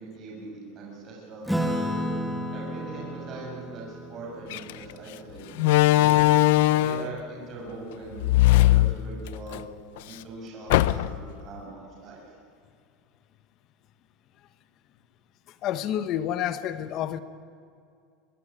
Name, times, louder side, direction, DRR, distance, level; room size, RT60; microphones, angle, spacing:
voice 1, 0.0-2.1 2.5-6.3 6.8-9.6 10.0-12.3, right 2 dB, 30° right, -3 dB, 6.9 m, -41 dB
Acoustic guitar / Strum, 1.5-6.3, equal, ahead, 1.8 m, -33 dB
Slam, 4.5-4.7 5.6-7.2 8.2-9.6 10.0-10.1 10.7-11.3, left 16 dB, 65° left, 0.6 m, -20 dB
voice 2, 15.6-17.2, left 10 dB, 35° left, 13 dB, 1.1 m, -29 dB
24.0 x 19.5 x 9.9 m, 2.3 s
supercardioid pair, 180°, 0 cm